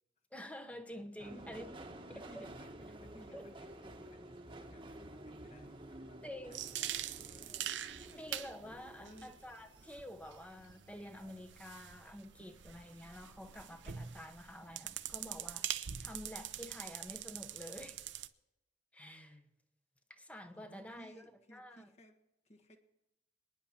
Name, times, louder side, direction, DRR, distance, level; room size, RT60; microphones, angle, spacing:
voice 1, 0.3-1.7 2.1-2.5 3.3-3.4 6.2-6.6 8.0-18.0 18.9-19.3 20.1-21.2 21.5-21.9, left 1 dB, 5° left, 6 dB, 1.0 m, -49 dB
voice 2, 1.2-2.7 3.0-8.2 8.6-9.4 19.0-19.5 20.5-22.2 22.4-22.8, equal, 35° left, 3 dB, 1.6 m, -60 dB
Subway metro underground, 1.2-11.9 12.3-13.0 13.3-13.4, right 1 dB, 25° right, 1.2 m, -52 dB
sound 1, 6.5-18.3, right 11 dB, 90° right, 0.7 m, -44 dB
27.5 x 10.0 x 2.9 m, 0.93 s
head